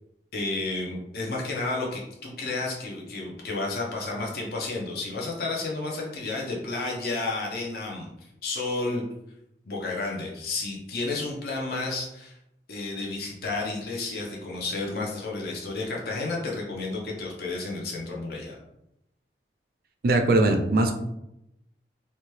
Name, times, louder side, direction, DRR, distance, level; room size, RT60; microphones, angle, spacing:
voice 1, 0.3-8.1 8.4-9.0 9.7-12.3 12.7-18.6, left 3 dB, 60° left, -2 dB, 0.6 m, -31 dB
voice 2, 20.0-20.9, right 2 dB, 55° right, 5 dB, 0.4 m, -20 dB
2.8 x 2.2 x 3.1 m, 0.83 s
head